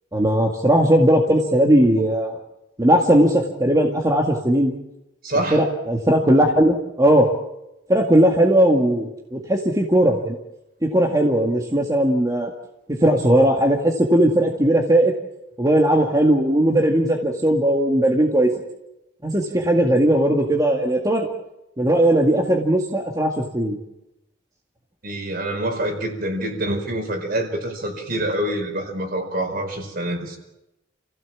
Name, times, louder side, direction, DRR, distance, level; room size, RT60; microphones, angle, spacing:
voice 1, 0.1-2.4 2.8-4.7 5.5-7.3 7.9-10.4 10.8-12.5 12.9-15.1 15.6-18.5 19.2-21.3 21.8-23.8, right 1 dB, 20° right, 1 dB, 2.0 m, -18 dB
voice 2, 5.2-5.6 25.0-30.4, right 1 dB, 55° right, 3 dB, 5.1 m, -26 dB
29.0 x 16.0 x 7.3 m, 0.90 s
head